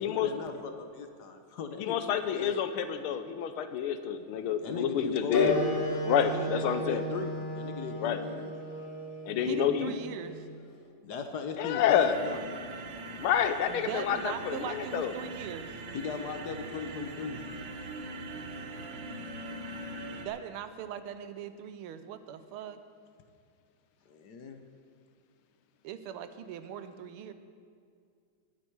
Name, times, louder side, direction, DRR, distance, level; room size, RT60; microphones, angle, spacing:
voice 1, 0.0-2.6 4.6-8.5 11.0-12.5 15.9-17.4 24.1-24.6, left 5 dB, 60° left, 6 dB, 1.3 m, -38 dB
voice 2, 1.8-5.6 6.1-7.0 8.0-8.2 9.3-10.0 11.6-12.2 13.2-15.1, left 9 dB, 80° left, 10 dB, 1.6 m, -28 dB
Wind instrument woodwind instrument, 5.3-10.4, equal, 45° left, 2.7 m, -35 dB
voice 3, 9.4-10.4 13.7-15.7 20.2-22.8 25.8-27.3, right 8 dB, 85° right, 11 dB, 1.6 m, -40 dB
sound 1, 12.0-20.3, right 2 dB, 65° right, 1.6 m, -42 dB
19.5 x 8.9 x 4.7 m, 2.3 s
omnidirectional pair, 2.3 m